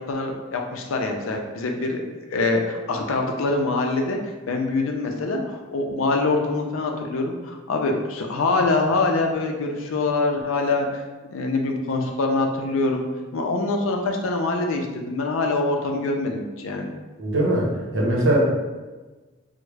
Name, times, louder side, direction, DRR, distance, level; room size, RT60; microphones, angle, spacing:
voice 1, 0.1-2.0 2.3-4.2 4.5-11.0 11.3-13.0 13.3-16.9, left 3 dB, 70° left, 3 dB, 0.4 m, -24 dB
voice 2, 17.2-18.4, right 1 dB, 65° right, -3 dB, 0.8 m, -21 dB
3.4 x 2.1 x 3.2 m, 1.2 s
head